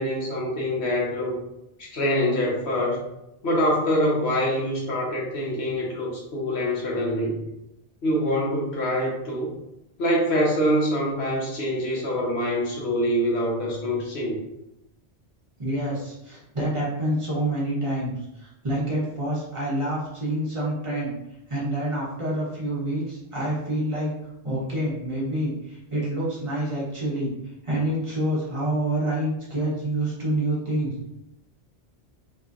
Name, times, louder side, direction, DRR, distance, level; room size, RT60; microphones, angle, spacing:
voice 1, 0.0-1.4 1.8-3.0 3.4-7.4 8.0-9.5 10.0-14.4, equal, 90° left, -3 dB, 1.1 m, -25 dB
voice 2, 15.6-21.1 21.5-24.1 24.4-27.3 27.6-31.1, right 1 dB, 30° right, -7 dB, 0.8 m, -27 dB
2.8 x 2.6 x 2.3 m, 0.88 s
omnidirectional pair, 1.1 m